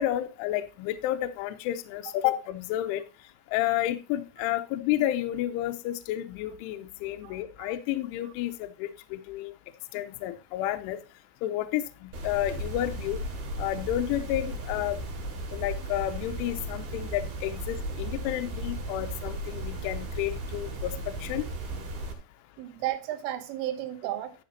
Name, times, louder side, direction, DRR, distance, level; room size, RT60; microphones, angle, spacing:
voice 1, 0.0-3.0 3.5-9.5 9.9-11.0 11.4-13.2 13.6-15.0 15.5-21.4, left 13 dB, 85° left, 3.1 m, -31 dB
voice 2, 7.2-7.7 22.6-24.3, right 13 dB, 85° right, 3.6 m, -34 dB
sound 1, 12.1-22.1, right 1 dB, 55° right, 3.9 m, -36 dB
12.5 x 8.5 x 2.8 m
omnidirectional pair, 5.6 m